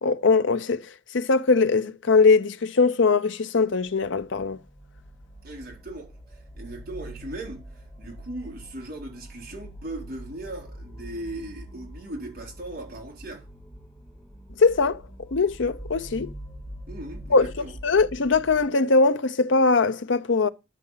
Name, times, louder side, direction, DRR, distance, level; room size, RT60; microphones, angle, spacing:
voice 1, 0.0-0.8 1.1-4.6 14.6-15.0 15.3-16.3 17.3-17.5 17.8-20.5, left 4 dB, 75° left, 0.7 m, -21 dB
sound 1, 3.8-18.6, equal, 25° left, 4.0 m, -44 dB
voice 2, 5.4-6.1 6.5-7.7 8.0-13.4 16.9-17.8, right 1 dB, 50° right, 3.7 m, -38 dB
11.0 x 6.5 x 5.7 m
head